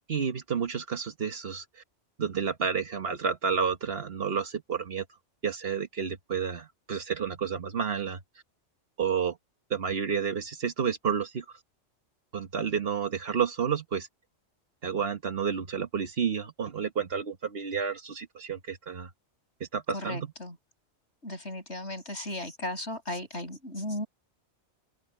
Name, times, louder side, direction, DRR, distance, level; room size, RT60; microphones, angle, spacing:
voice 1, 0.1-1.6 2.2-5.0 5.4-8.2 9.0-9.4 9.7-11.4 12.3-14.1 14.8-19.1 19.6-20.3, right 7 dB, 60° right, 1.4 m, -30 dB
voice 2, 19.9-20.6 21.2-24.1, left 1 dB, 70° left, 7.9 m, -36 dB
open air
omnidirectional pair, 1.2 m